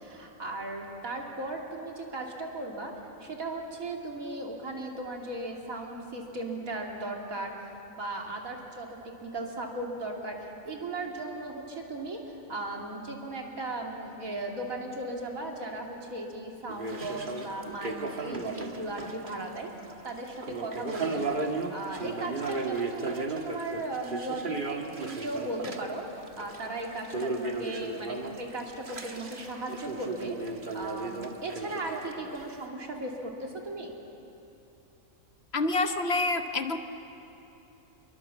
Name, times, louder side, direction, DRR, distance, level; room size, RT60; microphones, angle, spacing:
voice 1, 0.0-2.9 3.2-19.7 20.0-21.2 21.7-33.9, right 2 dB, 80° right, 0 dB, 3.1 m, -37 dB
sound 1, 16.7-19.6 19.9-32.6, right 3 dB, 40° right, 1.6 m, -35 dB
voice 2, 35.5-36.8, left 2 dB, 50° left, 7 dB, 1.2 m, -27 dB
26.5 x 22.5 x 7.4 m, 2.9 s
omnidirectional pair, 1.4 m